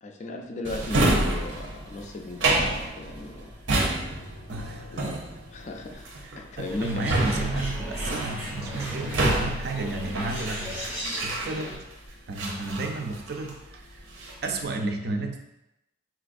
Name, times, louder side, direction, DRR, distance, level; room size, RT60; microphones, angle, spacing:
voice 1, 0.0-2.6 2.9-3.5 4.9-5.2 5.5-6.1 6.4-7.0, left 2 dB, 40° left, 3 dB, 0.3 m, -36 dB
Drawer open or close, 0.6-11.9 12.3-13.6 14.0-14.5, right 2 dB, 85° right, 0.7 m, -28 dB
voice 2, 4.5-5.0 6.2-11.0 11.2-11.9 12.3-14.0 14.4-15.4, right 2 dB, 55° right, 4 dB, 0.4 m, -33 dB
Bird, 6.7-11.8, equal, 10° right, 0.6 m, -35 dB
4.2 x 2.4 x 2.5 m, 0.89 s
head